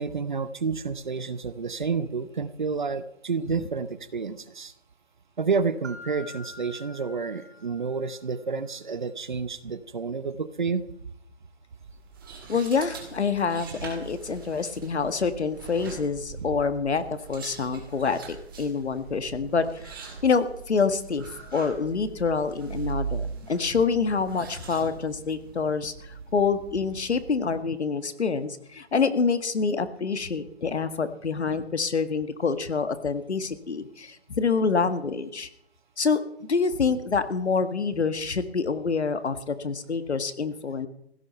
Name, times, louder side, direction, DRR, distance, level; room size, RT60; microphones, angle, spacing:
voice 1, 0.0-4.7 5.4-10.8, right 5 dB, 45° right, 14 dB, 0.9 m, -30 dB
Mallet percussion, 5.8-8.4, left 2 dB, 80° right, 2.3 m, -46 dB
sound 1, 11.8-27.3, right 5 dB, 20° right, 2.2 m, -41 dB
voice 2, 12.5-35.5 36.0-36.2 36.5-40.9, left 5 dB, 90° left, 11 dB, 1.8 m, -27 dB
16.0 x 12.5 x 5.6 m, 0.71 s
hypercardioid pair, 180°, 32 cm